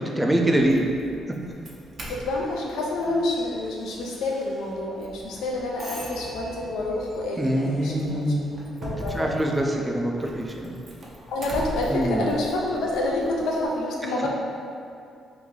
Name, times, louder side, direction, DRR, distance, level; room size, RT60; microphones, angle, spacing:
voice 1, 0.2-0.8 7.4-8.5 9.1-10.8 11.9-12.3, right 1 dB, 10° right, 0 dB, 0.4 m, -24 dB
Doorbell, 0.5-13.7, right 1 dB, 45° right, 0.7 m, -41 dB
voice 2, 2.1-8.3 8.8-9.3 11.3-14.3, left 2 dB, 80° left, -2 dB, 0.6 m, -28 dB
3.1 x 2.7 x 3.7 m, 2.5 s
cardioid pair, 90°, 0 cm